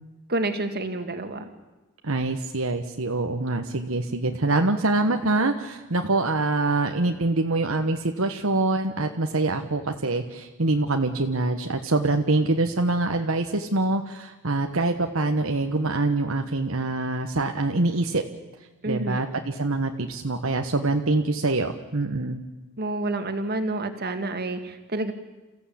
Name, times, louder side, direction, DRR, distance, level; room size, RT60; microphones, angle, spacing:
voice 1, 0.3-1.5 18.8-19.2 22.8-25.1, right 2 dB, 45° right, 7 dB, 2.0 m, -29 dB
voice 2, 2.0-18.2 18.8-22.4, right 2 dB, 70° right, 4 dB, 1.3 m, -25 dB
29.0 x 15.5 x 8.6 m, 1.1 s
head